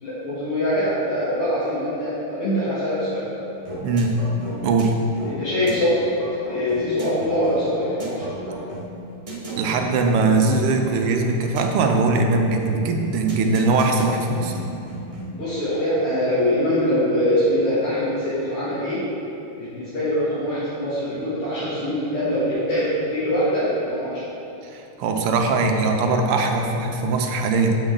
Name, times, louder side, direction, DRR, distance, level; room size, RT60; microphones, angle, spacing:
voice 1, 0.0-3.5 5.3-6.1 6.5-8.2 15.3-19.0 19.6-24.3, equal, 80° left, -13 dB, 2.7 m, -23 dB
sound 1, 3.6-15.5, right 1 dB, 50° right, 0.4 m, -35 dB
voice 2, 3.8-4.2 4.6-5.0 9.6-14.5 24.6-27.8, right 3 dB, 90° right, 3 dB, 1.6 m, -21 dB
7.7 x 5.2 x 3.7 m, 2.9 s
omnidirectional pair, 2.4 m